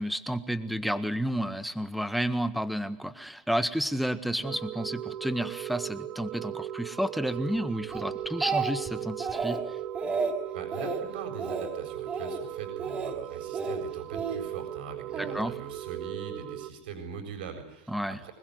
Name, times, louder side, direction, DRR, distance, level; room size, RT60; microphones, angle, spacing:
voice 1, 0.0-9.6 15.2-15.5 17.9-18.2, equal, ahead, 11 dB, 1.6 m, -31 dB
sound 1, 4.4-16.7, right 12 dB, 40° right, 1.5 m, -38 dB
Speech, 7.9-8.9 9.2-9.6 9.9-10.3 10.7-11.0 11.4-11.7 12.1-12.4 12.8-13.1 13.5-14.4 15.1-15.4, right 5 dB, 20° right, 5.4 m, -32 dB
voice 2, 10.5-18.3, right 6 dB, 80° right, 5 dB, 7.5 m, -42 dB
25.0 x 21.5 x 9.6 m, 0.83 s
supercardioid pair, 150°, 5 cm